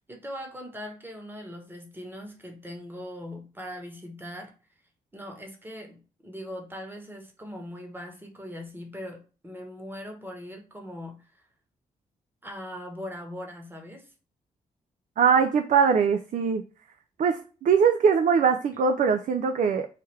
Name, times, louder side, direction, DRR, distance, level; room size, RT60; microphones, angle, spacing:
voice 1, 0.1-4.5 5.1-9.2 9.4-11.4 12.4-14.1, equal, 10° right, 2 dB, 1.1 m, -40 dB
voice 2, 15.2-16.6 17.2-19.9, right 6 dB, 45° right, 7 dB, 0.4 m, -22 dB
3.2 x 2.1 x 3.3 m, 0.36 s
hypercardioid pair, 40°, 18 cm